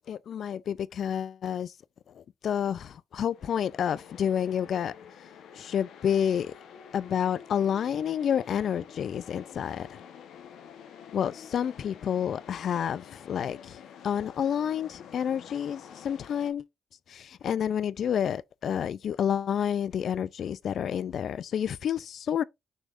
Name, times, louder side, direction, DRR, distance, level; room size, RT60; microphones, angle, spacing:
voice 1, 0.1-1.7 2.2-4.9 5.5-6.5 6.9-10.0 11.1-13.8 14.0-16.6 17.1-22.4, left 8 dB, 60° left, 0.3 m, -29 dB
sound 1, 3.3-16.5, left 8 dB, 75° left, 0.9 m, -48 dB
6.3 x 3.4 x 2.4 m
cardioid pair, 90°, 0 cm